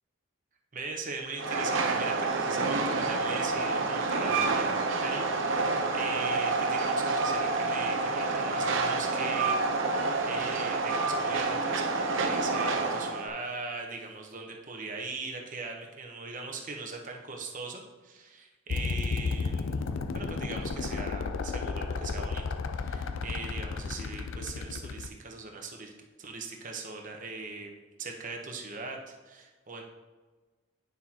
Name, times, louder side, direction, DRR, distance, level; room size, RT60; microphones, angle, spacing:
voice 1, 0.7-19.8 20.1-22.4 22.7-25.9 26.2-27.7 28.0-29.9, right 4 dB, 40° right, 2 dB, 1.0 m, -40 dB
Train, 1.4-13.3, right 3 dB, 65° right, 0.8 m, -28 dB
sound 1, 18.7-25.1, left 4 dB, 65° left, 0.4 m, -33 dB
9.3 x 6.3 x 2.9 m, 1.3 s
head